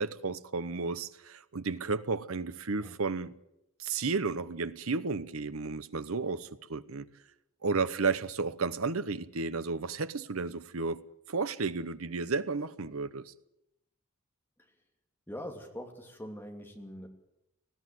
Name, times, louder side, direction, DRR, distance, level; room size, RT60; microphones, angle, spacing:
voice 1, 0.0-3.3 3.8-7.1 7.6-11.0 11.3-13.3, right 4 dB, 75° right, 1.0 m, -33 dB
voice 2, 15.3-17.1, equal, 10° left, 2.9 m, -43 dB
19.5 x 14.5 x 9.3 m
head